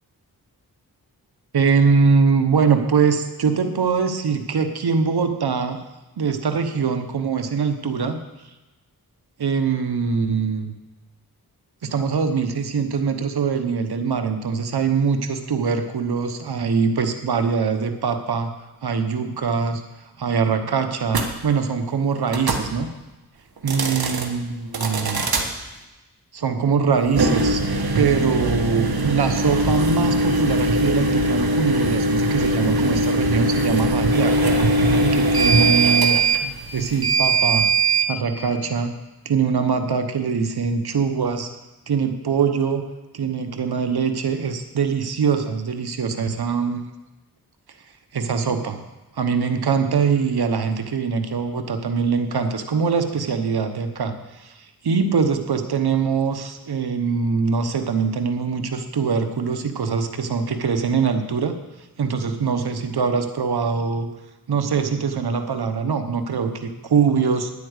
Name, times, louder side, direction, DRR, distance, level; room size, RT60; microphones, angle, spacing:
voice 1, 1.5-5.8 6.2-8.2 9.4-10.7 11.8-18.5 18.8-19.8 20.2-22.9 23.6-25.2 26.3-27.6 27.9-36.2 36.7-37.7 38.1-38.9 39.2-41.5 41.9-42.8 43.1-46.8 48.1-48.8 49.2-61.6 62.0-64.1 64.5-67.5, right 5 dB, 90° right, 7 dB, 1.1 m, -23 dB
sound 1, 21.1-21.3 22.3-22.7 23.6-24.3 24.7-25.5 27.1-38.1, right 2 dB, 75° right, 1.6 m, -20 dB
10.5 x 8.5 x 8.1 m, 1.1 s
wide cardioid pair, 60°, 37 cm